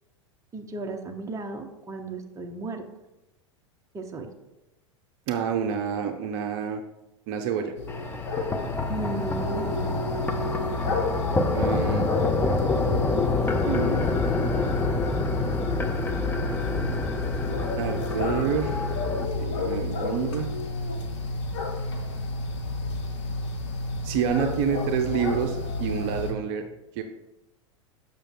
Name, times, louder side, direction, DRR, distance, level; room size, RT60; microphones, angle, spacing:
voice 1, 0.5-2.8 3.9-4.3 8.9-10.0, right 2 dB, 20° right, 3 dB, 0.9 m, -35 dB
voice 2, 5.3-6.8 7.3-7.7 11.5-12.1 13.7-14.4 17.8-18.9 19.2-20.5 24.0-26.6 26.9-27.0, right 7 dB, 50° right, 5 dB, 0.7 m, -28 dB
sound 1, 7.7-26.3, left 2 dB, 60° left, 1.3 m, -30 dB
sound 2, 7.9-19.3, left 3 dB, 10° left, 0.6 m, -28 dB
6.7 x 5.9 x 3.8 m, 0.96 s
figure-of-eight pair, 90°, 16 cm